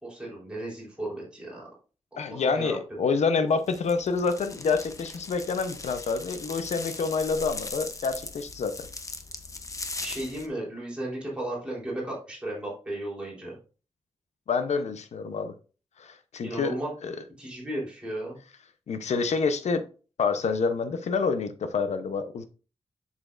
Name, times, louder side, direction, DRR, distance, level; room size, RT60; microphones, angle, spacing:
voice 1, 0.0-1.6 2.1-3.0 10.0-13.6 16.4-16.9 17.4-18.4, right 1 dB, 10° right, -5 dB, 3.7 m, -35 dB
voice 2, 2.2-8.7 14.5-15.5 16.0-16.8 17.0-17.1 18.9-19.8 20.2-22.4, left 5 dB, 80° left, 9 dB, 0.8 m, -27 dB
sound 1, 3.7-10.5, left 3 dB, 30° left, 0.7 m, -39 dB
7.9 x 6.6 x 2.5 m, 0.36 s
wide cardioid pair, 165°, 11 cm